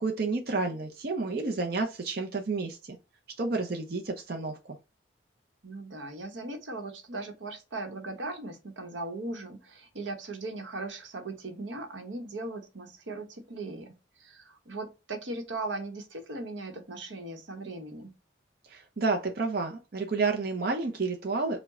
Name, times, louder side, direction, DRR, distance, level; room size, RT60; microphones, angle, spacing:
voice 1, 0.0-3.0 3.4-4.8 18.7-21.6, right 3 dB, 55° right, 0.6 m, -30 dB
voice 2, 5.6-18.1, right 2 dB, 90° right, 1.0 m, -38 dB
4.6 x 2.2 x 4.2 m
head